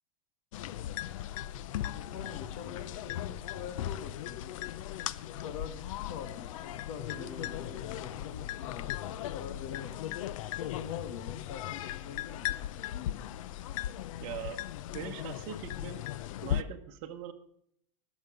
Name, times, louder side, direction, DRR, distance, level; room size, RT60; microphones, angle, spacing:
sound 1, 0.5-16.6, left 12 dB, 75° left, 0.6 m, -38 dB
voice 1, 1.9-4.6 5.2-12.6, left 7 dB, 60° left, 9 dB, 1.5 m, -45 dB
sound 2, 7.1-9.5, equal, 10° left, 5.8 m, -52 dB
voice 2, 14.2-14.6 14.9-16.0 16.4-17.3, right 9 dB, 50° right, 3 dB, 1.2 m, -41 dB
20.5 x 7.3 x 4.9 m, 0.69 s
supercardioid pair, 140°, 17 cm